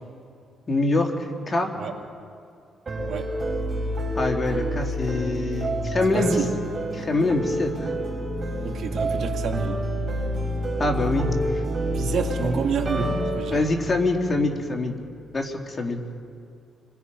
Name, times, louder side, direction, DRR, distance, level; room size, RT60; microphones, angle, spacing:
voice 1, 0.7-1.7 4.1-6.4 6.9-7.7 10.8-11.6 13.5-15.0 15.3-16.0, left 2 dB, 30° left, 2 dB, 3.4 m, -24 dB
sound 1, 2.9-15.0, right 1 dB, 35° right, 7.0 m, -28 dB
voice 2, 3.1-3.4 6.1-6.5 8.6-9.9 11.8-13.6, right 6 dB, 65° right, 2 dB, 2.9 m, -29 dB
29.5 x 23.0 x 5.6 m, 2.3 s
cardioid pair, 90°, 0 cm